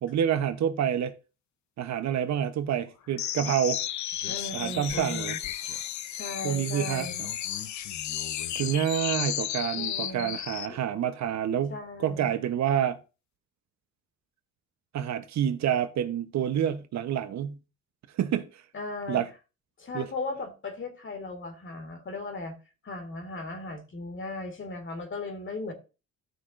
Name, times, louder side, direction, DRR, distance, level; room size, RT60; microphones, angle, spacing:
voice 1, 0.0-1.1 1.8-3.8 4.5-5.4 6.4-7.1 8.5-13.0 14.9-17.6 18.2-18.6 19.1-19.3 19.9-20.1, right 9 dB, 65° right, 0.8 m, -28 dB
sound 1, 3.2-10.7, left 11 dB, 70° left, 0.7 m, -33 dB
voice 2, 4.3-5.4 6.1-7.2 9.8-10.4 10.7-10.8 11.7-12.3 18.7-19.2 19.8-22.6 22.8-25.7, left 3 dB, 40° left, 2.0 m, -37 dB
15.5 x 6.1 x 2.5 m
cardioid pair, 90°, 30 cm